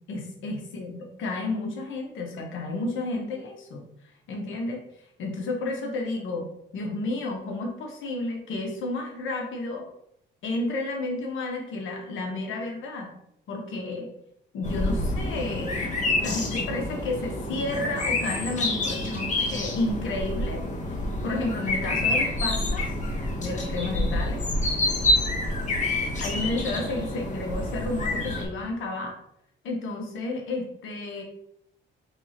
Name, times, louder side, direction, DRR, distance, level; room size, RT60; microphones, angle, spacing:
voice 1, 0.1-3.8 4.3-4.8 5.2-6.5 6.7-9.9 10.4-13.1 13.5-14.1 14.5-15.9 16.2-20.6 21.2-22.9 23.4-24.4 26.2-29.2 29.6-31.2, left 2 dB, 80° left, 1 dB, 0.9 m, -31 dB
sound 1, 14.6-28.4, left 2 dB, 40° left, 1.0 m, -28 dB
4.4 x 3.2 x 2.8 m, 0.76 s
cardioid pair, 90°, 20 cm